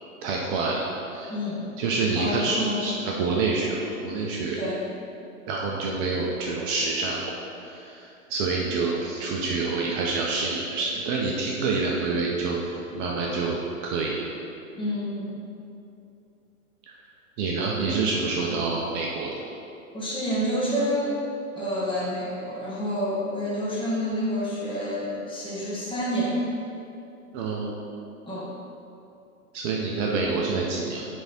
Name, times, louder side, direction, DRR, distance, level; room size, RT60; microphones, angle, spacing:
voice 1, 0.2-0.8 1.1-1.3 1.8-3.8 4.0-4.6 5.5-7.2 7.6-12.6 12.9-14.2 16.9-17.0 17.4-19.5 27.3-27.7 29.5-31.1, right 4 dB, 35° right, -2 dB, 0.8 m, -27 dB
voice 2, 1.3-1.7 2.1-2.9 4.5-4.9 14.7-15.4 19.9-21.2 21.6-26.4 28.2-28.5, equal, 10° left, -6 dB, 1.6 m, -28 dB
9.3 x 3.7 x 4.3 m, 2.7 s
hypercardioid pair, 115°, 43 cm